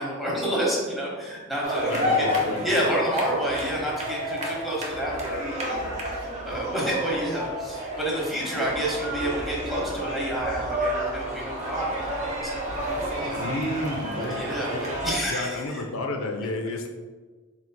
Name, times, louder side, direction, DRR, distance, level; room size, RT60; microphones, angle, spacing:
voice 1, 0.0-2.3 2.6-12.8 13.1-13.4 14.1-15.8, equal, ahead, -5 dB, 0.9 m, -29 dB
sound 1, 1.6-15.1, equal, 35° right, 0.7 m, -30 dB
voice 2, 1.8-2.6 13.4-14.8 15.3-16.9, left 2 dB, 75° left, 3 dB, 0.4 m, -31 dB
4.4 x 3.9 x 2.2 m, 1.4 s
head